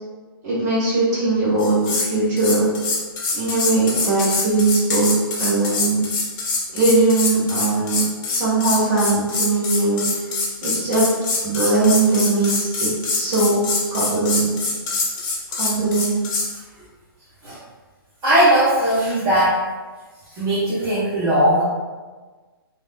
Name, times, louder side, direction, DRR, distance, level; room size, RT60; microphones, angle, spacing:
voice 1, 0.4-2.7 3.3-5.1 5.4-6.0 6.7-8.0 8.3-10.0 10.6-11.1 11.4-13.6 13.9-14.5 15.6-16.1, right 3 dB, 45° right, -7 dB, 1.5 m, -20 dB
sound 1, 1.6-2.1 2.4-16.5, left 3 dB, 25° left, 0.7 m, -24 dB
voice 2, 18.2-19.6 20.3-21.6, right 1 dB, 30° right, -12 dB, 1.0 m, -18 dB
3.4 x 2.6 x 2.2 m, 1.3 s
hypercardioid pair, 135°, 13 cm